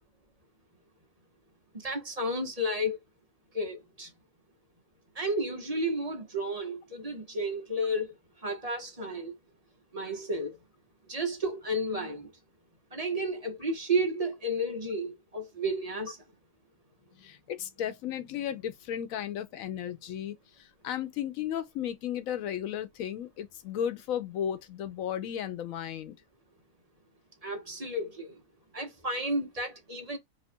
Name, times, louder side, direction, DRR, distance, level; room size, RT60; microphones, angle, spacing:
voice 1, 1.7-3.0 3.5-4.1 5.2-8.1 8.4-9.4 9.9-10.6 11.1-12.3 12.9-16.2 27.4-28.4 28.7-30.2, right 1 dB, 30° right, 0.9 m, -32 dB
voice 2, 17.2-26.2, left 10 dB, 85° left, 1.0 m, -35 dB
2.9 x 2.4 x 4.2 m
omnidirectional pair, 1.4 m